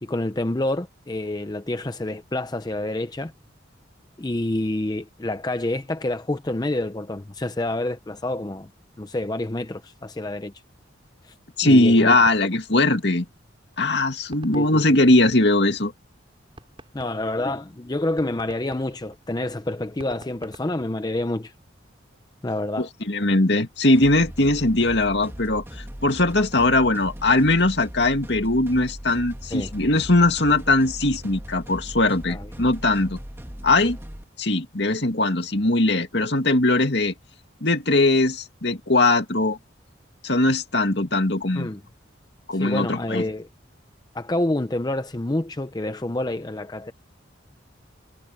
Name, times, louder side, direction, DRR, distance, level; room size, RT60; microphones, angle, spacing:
voice 1, 0.0-3.3 4.2-8.7 9.0-10.5 11.2-11.3 11.6-12.2 14.5-14.8 16.9-21.5 22.4-22.9 29.5-29.7 32.3-32.5 41.5-41.8 42.5-43.5 44.1-46.9, left 1 dB, 20° left, 0.6 m, -28 dB
voice 2, 11.6-13.3 13.8-15.9 22.8-33.2 33.6-34.0 34.4-37.1 37.6-39.6 40.2-41.7 42.5-43.2, left 2 dB, 60° left, 2.5 m, -20 dB
sound 1, 13.7-15.8 16.2-16.3 16.6-21.5, right 1 dB, 25° right, 5.9 m, -48 dB
sound 2, 23.9-34.2, equal, 10° right, 1.5 m, -39 dB
head